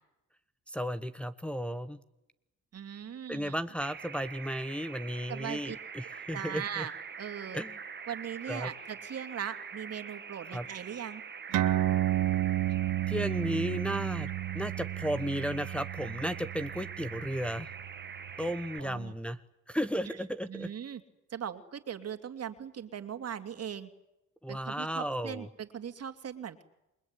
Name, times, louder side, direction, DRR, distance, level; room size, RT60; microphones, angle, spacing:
voice 1, 0.7-2.0 3.3-6.8 7.5-7.7 8.5-8.7 10.5-10.6 13.1-14.3 14.5-17.7 18.4-19.4 19.7-20.7 24.4-25.5, equal, 5° left, 9 dB, 1.2 m, -34 dB
voice 2, 2.7-3.5 5.3-5.8 6.3-6.9 7.2-7.6 8.1-11.2 18.8-19.1 20.0-20.2 20.5-21.0 21.3-23.9 24.5-26.6, right 8 dB, 55° right, 8 dB, 2.7 m, -39 dB
sound 1, 3.8-18.8, right 6 dB, 35° right, 1.9 m, -44 dB
sound 2, 11.5-18.5, right 13 dB, 85° right, 1.4 m, -32 dB
28.0 x 22.0 x 9.8 m, 0.90 s
cardioid pair, 90°, 30 cm